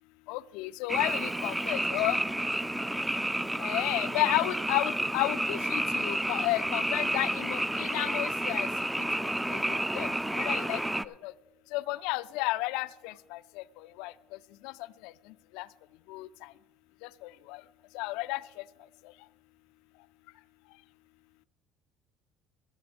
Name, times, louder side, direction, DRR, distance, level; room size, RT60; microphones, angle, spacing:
voice 1, 0.3-2.2 3.6-8.7 9.5-10.1 10.3-11.3 11.7-14.1 14.6-14.7 15.0-15.1 15.5-15.7 16.1-16.5 17.0-17.6 17.9-18.4, left 19 dB, 80° left, 17 dB, 0.4 m, -32 dB
Frog, 0.9-11.0, right 1 dB, 5° right, 0.4 m, -30 dB
15.5 x 7.8 x 5.2 m, 1.0 s
supercardioid pair, 95°, 0 cm